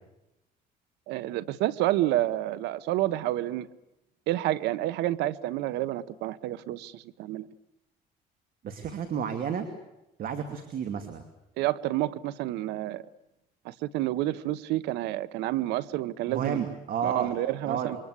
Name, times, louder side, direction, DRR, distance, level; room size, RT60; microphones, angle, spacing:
voice 1, 1.1-3.7 4.3-7.5 11.6-13.0 13.6-16.7 17.0-18.0, right 15 dB, 90° right, 17 dB, 1.1 m, -29 dB
voice 2, 8.6-9.7 10.2-11.2 16.3-17.3 17.6-17.9, right 7 dB, 60° right, 7 dB, 2.7 m, -31 dB
27.5 x 23.5 x 8.3 m, 0.89 s
cardioid pair, 110°, 17 cm